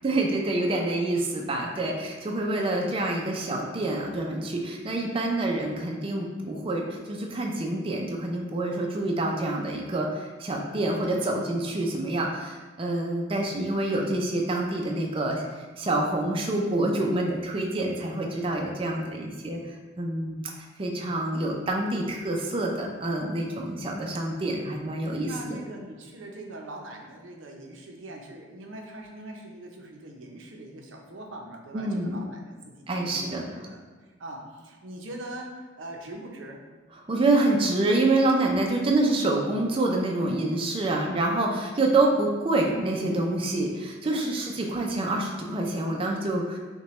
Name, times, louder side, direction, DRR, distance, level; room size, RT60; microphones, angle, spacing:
voice 1, 0.0-15.4 15.8-20.5 20.8-25.6 31.7-32.2 32.9-33.5 37.1-46.6, right 2 dB, 30° right, 0 dB, 0.4 m, -27 dB
voice 2, 25.2-36.7 44.1-44.5, right 1 dB, 90° right, 1 dB, 0.6 m, -42 dB
5.6 x 2.2 x 3.1 m, 1.4 s
head